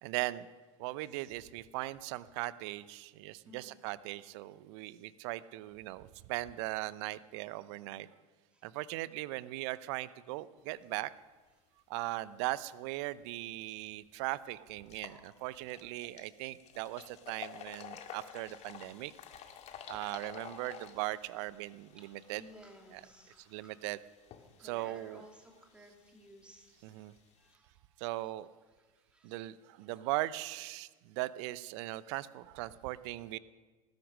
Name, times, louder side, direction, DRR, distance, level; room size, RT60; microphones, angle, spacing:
voice 1, 0.0-0.5 0.8-8.1 8.6-11.1 11.9-19.1 19.9-22.5 22.9-23.1 23.4-24.0 24.6-25.3 26.8-27.1 28.0-28.5 29.2-33.4, right 17 dB, 55° right, 18 dB, 0.7 m, -39 dB
voice 2, 3.4-3.8 8.5-8.7 16.9-17.1 17.7-18.2 22.1-23.7 24.6-26.7 27.4-27.9 28.8-29.4, equal, 5° right, 2 dB, 3.0 m, -58 dB
sound 1, 13.5-13.6 14.1-14.2 14.8-27.5, left 9 dB, 40° left, 1.9 m, -52 dB
19.0 x 10.5 x 6.4 m, 1.3 s
figure-of-eight pair, 80°, 18 cm